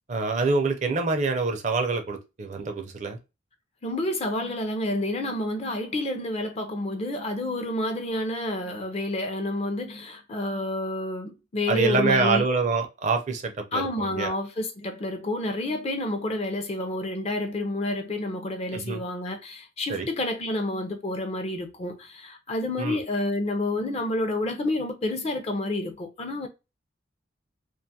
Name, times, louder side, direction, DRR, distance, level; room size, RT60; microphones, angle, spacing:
voice 1, 0.1-3.2 11.7-14.3 18.7-19.0 19.9-20.1 22.8-23.0, right 4 dB, 40° right, 0.4 m, -26 dB
voice 2, 3.8-12.4 13.7-26.5, left 1 dB, 35° left, 0.4 m, -29 dB
2.5 x 2.3 x 2.6 m
head